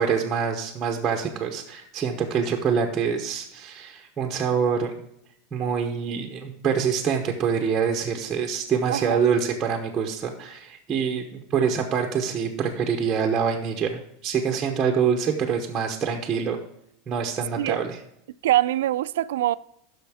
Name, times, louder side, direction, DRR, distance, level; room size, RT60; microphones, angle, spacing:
voice 1, 0.0-4.9 5.5-16.6 17.1-18.0, right 6 dB, 15° right, 0.7 m, -25 dB
voice 2, 8.9-9.2 17.6-17.8 18.4-19.5, right 14 dB, 85° right, 0.4 m, -23 dB
15.0 x 6.3 x 3.5 m
supercardioid pair, 175°, 0 cm